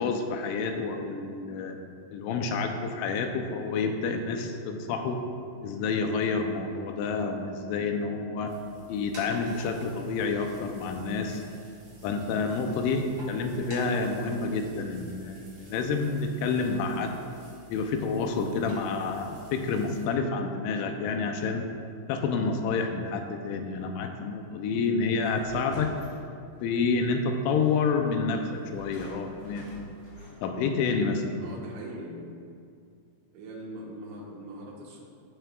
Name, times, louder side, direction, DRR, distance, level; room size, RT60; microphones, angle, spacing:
voice 1, 0.0-1.8 2.1-5.2 5.6-8.6 8.9-11.4 12.0-13.0 13.3-17.1 17.7-21.7 22.1-25.9 26.6-29.7 30.4-31.4, left 4 dB, 85° left, 4 dB, 3.0 m, -29 dB
sound 1, 8.4-20.1, right 1 dB, 30° right, 1.8 m, -51 dB
voice 2, 12.6-13.0 31.4-32.3 33.3-35.0, right 1 dB, 75° right, -3 dB, 3.6 m, -42 dB
sound 2, 25.2-26.7 27.6-27.7 28.5-30.7, left 1 dB, 35° left, 1.9 m, -48 dB
17.0 x 7.9 x 2.4 m, 2.3 s
omnidirectional pair, 5.5 m